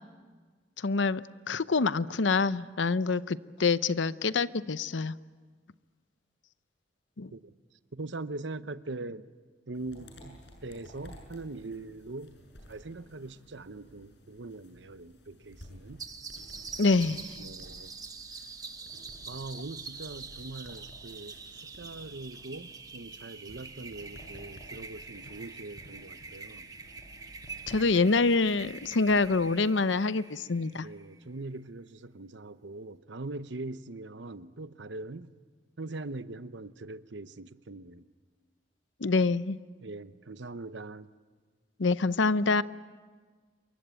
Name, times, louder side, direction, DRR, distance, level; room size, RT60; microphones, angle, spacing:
voice 1, 0.8-5.2 7.2-7.3 16.8-17.3 27.7-30.9 39.0-39.6 41.8-42.6, left 3 dB, 85° left, 0.7 m, -26 dB
voice 2, 7.9-9.3 9.7-12.4 12.7-16.1 17.4-17.9 19.3-26.7 27.9-28.2 30.7-35.3 35.8-38.0 39.8-41.1, right 2 dB, 75° right, 0.9 m, -42 dB
sound 1, 9.7-29.4, equal, 70° left, 7.0 m, -53 dB
sound 2, 16.0-31.2, right 4 dB, 20° right, 1.3 m, -45 dB
28.0 x 23.5 x 9.1 m
head